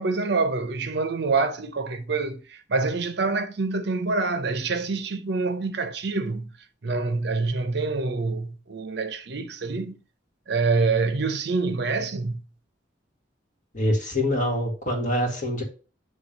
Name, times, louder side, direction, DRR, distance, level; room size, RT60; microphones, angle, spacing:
voice 1, 0.0-6.5 6.8-10.0 10.5-12.4, right 3 dB, 60° right, 0.7 m, -26 dB
voice 2, 13.7-15.6, left 1 dB, 40° left, 2.1 m, -25 dB
7.5 x 3.2 x 5.2 m
head